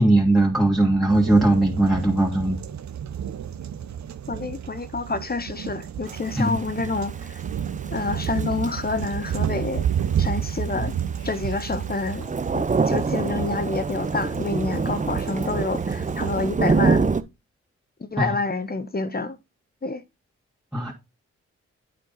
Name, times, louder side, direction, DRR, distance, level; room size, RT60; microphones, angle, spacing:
voice 1, 0.0-2.6 6.4-6.6 10.7-10.9 18.2-18.3 20.7-20.9, right 2 dB, ahead, 2.5 m, -19 dB
sound 1, 1.1-16.5, right 9 dB, 65° right, 0.7 m, -31 dB
voice 2, 4.3-7.4 7.9-9.9 10.2-10.9 11.2-17.2 18.0-19.4 19.8-20.0, left 3 dB, 30° left, 1.1 m, -28 dB
Thunder / Rain, 6.1-17.2, right 4 dB, 25° right, 0.7 m, -27 dB
8.4 x 5.0 x 4.1 m
cardioid pair, 50°, 30 cm